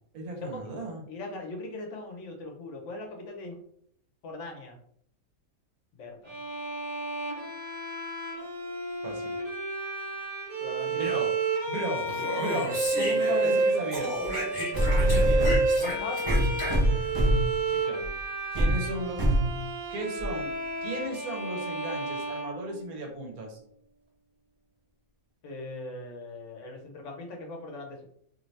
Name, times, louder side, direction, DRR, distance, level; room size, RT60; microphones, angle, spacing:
voice 1, 0.1-1.0 9.0-9.4 10.9-14.2 15.0-15.5 17.7-18.1 18.5-19.3 19.9-20.5 20.8-23.6, right 2 dB, 85° right, 1 dB, 1.4 m, -36 dB
voice 2, 1.1-3.6 4.2-4.8 5.9-6.4 10.6-11.2 13.3-13.5 14.8-15.4 15.7-16.6 25.4-28.0, left 2 dB, 60° left, 2 dB, 1.0 m, -40 dB
Bowed string instrument, 6.3-23.2, right 3 dB, 70° right, 1.5 m, -31 dB
Speech, 12.0-13.6 13.9-17.1, equal, 35° left, 1.5 m, -34 dB
sound 1, 14.2-14.3 14.7-15.6 16.3-17.5 18.0-18.2 18.5-18.8 19.2-19.5 20.2-20.3, right 1 dB, 30° right, 0.7 m, -23 dB
3.0 x 2.7 x 3.1 m, 0.65 s
omnidirectional pair, 1.5 m